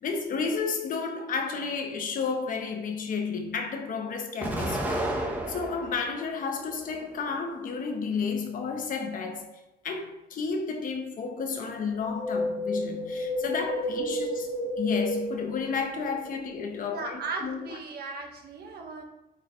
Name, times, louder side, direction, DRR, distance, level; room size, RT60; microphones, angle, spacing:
voice 1, 0.0-4.9 5.5-9.5 9.8-14.5 14.8-17.8, left 5 dB, 55° left, 1.1 m, -32 dB
Explosion, 4.4-6.1 6.6-7.5, right 1 dB, 10° right, 1.1 m, -32 dB
Wind, 11.9-16.2 16.5-16.6, left 1 dB, 80° left, 1.5 m, -31 dB
voice 2, 16.9-19.0, right 4 dB, 70° right, 1.5 m, -37 dB
8.8 x 5.9 x 3.2 m
cardioid pair, 180°, 17 cm